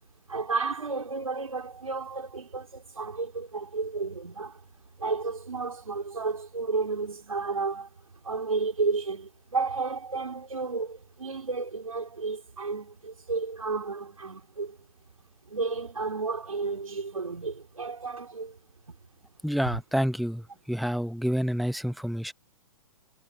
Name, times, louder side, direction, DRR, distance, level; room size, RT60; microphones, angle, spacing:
voice 1, 0.3-4.6 5.0-7.9 8.2-14.8 15.5-18.6, right 4 dB, 85° right, 3.1 m, -32 dB
voice 2, 19.4-20.4 20.7-22.3, equal, ahead, 0.7 m, -28 dB
figure-of-eight pair, 115°, 17 cm